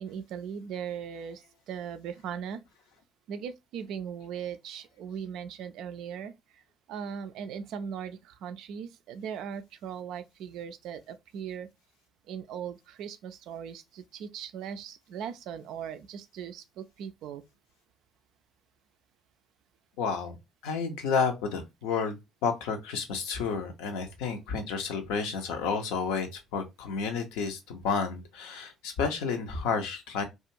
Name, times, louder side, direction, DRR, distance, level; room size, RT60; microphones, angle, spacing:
voice 1, 0.0-2.6 3.3-6.6 6.9-11.7 12.3-17.4, right 8 dB, 60° right, 0.3 m, -39 dB
voice 2, 20.0-20.4 20.6-30.2, left 5 dB, 65° left, 0.5 m, -31 dB
2.4 x 2.3 x 2.8 m
figure-of-eight pair, 50°, 0 cm